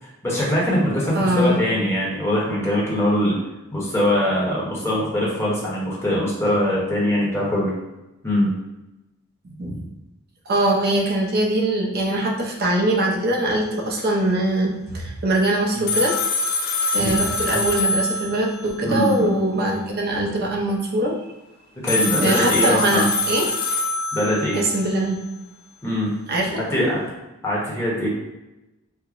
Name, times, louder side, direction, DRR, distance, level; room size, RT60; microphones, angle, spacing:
voice 1, 0.0-3.4 3.7-7.7 8.2-8.5 15.7-15.9 17.0-17.2 18.8-19.4 21.8-23.1 24.1-24.6 25.8-26.1 26.5-27.1 27.4-28.1, left 1 dB, 15° left, -6 dB, 1.0 m, -22 dB
voice 2, 1.2-1.6 9.6-9.9 10.5-16.1 16.9-21.3 22.2-23.5 24.5-25.2 26.3-26.6, right 1 dB, 50° right, 0 dB, 0.6 m, -22 dB
sound 1, 15.9-18.7 21.9-24.9, left 2 dB, 50° left, 0.6 m, -24 dB
4.6 x 2.1 x 2.5 m, 0.98 s
head